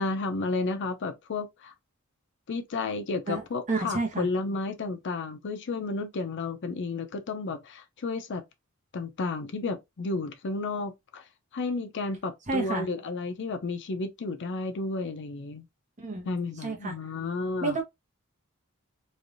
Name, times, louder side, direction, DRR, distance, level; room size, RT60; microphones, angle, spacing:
voice 1, 0.0-1.7 2.5-8.4 8.9-11.2 11.5-15.6 16.3-17.8, left 3 dB, 55° left, 0.5 m, -32 dB
voice 2, 3.3-4.3 12.5-12.9 16.0-16.3 16.6-17.0 17.6-17.8, right 3 dB, 35° right, 0.9 m, -30 dB
3.2 x 2.6 x 2.5 m
head